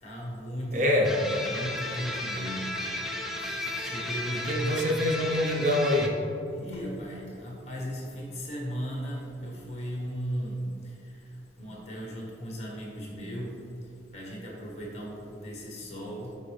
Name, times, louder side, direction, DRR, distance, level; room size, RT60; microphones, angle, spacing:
voice 1, 0.0-2.8 3.4-4.8 6.5-13.6 14.1-16.4, equal, 35° left, -3 dB, 1.4 m, -37 dB
voice 2, 0.7-1.1 4.5-6.1, left 1 dB, 45° right, 1 dB, 0.7 m, -25 dB
sound 1, 1.0-6.1, left 1 dB, ahead, 0.5 m, -34 dB
8.0 x 4.8 x 3.3 m, 2.8 s
head